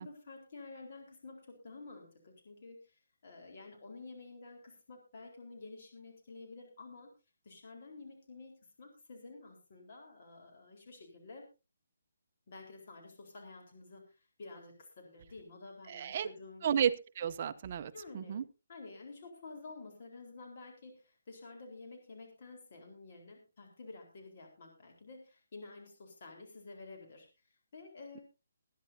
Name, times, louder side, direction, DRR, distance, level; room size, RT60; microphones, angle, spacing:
voice 1, 0.0-7.1 7.4-11.5 12.5-16.7 17.9-18.4 18.7-27.3 27.7-28.2, left 3 dB, 45° left, 2 dB, 4.1 m, -51 dB
voice 2, 15.9-16.3 16.6-18.4, right 8 dB, 35° right, 11 dB, 0.7 m, -33 dB
22.0 x 10.5 x 2.8 m, 0.29 s
hypercardioid pair, 170°, 0 cm